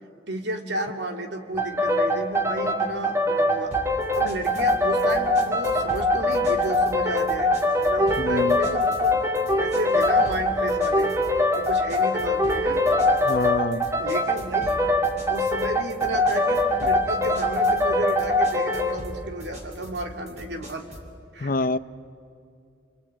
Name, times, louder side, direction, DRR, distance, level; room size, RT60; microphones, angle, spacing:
voice 1, 0.3-3.8 4.1-7.5 7.9-11.1 11.6-12.9 14.0-14.8 15.3-20.8 21.3-21.5, right 1 dB, 70° right, 4 dB, 2.5 m, -33 dB
sound 1, 1.6-19.0, left 1 dB, 15° right, 1.7 m, -23 dB
sound 2, 3.7-21.1, equal, 40° right, 4.6 m, -41 dB
voice 2, 8.2-8.8 13.2-13.8 21.4-21.8, left 2 dB, 50° left, 15 dB, 0.6 m, -26 dB
29.0 x 23.5 x 8.7 m, 2.5 s
head